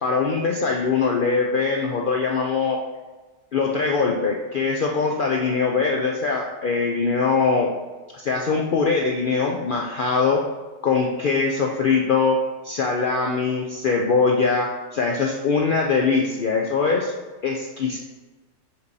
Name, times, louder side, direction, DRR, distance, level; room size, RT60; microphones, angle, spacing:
voice 1, 0.0-2.8 3.5-7.7 8.1-10.4 10.8-17.1 17.4-18.0, left 4 dB, 65° left, 0 dB, 0.5 m, -22 dB
7.9 x 4.6 x 2.7 m, 1.2 s
omnidirectional pair, 1.4 m